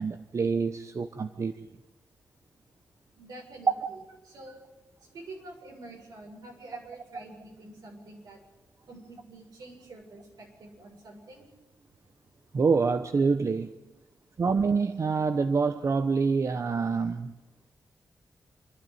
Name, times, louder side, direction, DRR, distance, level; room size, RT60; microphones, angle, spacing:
voice 1, 0.0-1.6 12.5-13.7 14.4-17.3, right 4 dB, 50° right, 9 dB, 1.0 m, -26 dB
voice 2, 3.1-4.6 5.1-8.4 8.9-11.4, right 2 dB, 80° right, 0 dB, 7.0 m, -47 dB
27.5 x 12.0 x 9.4 m, 1.1 s
cardioid pair, 80°, 7 cm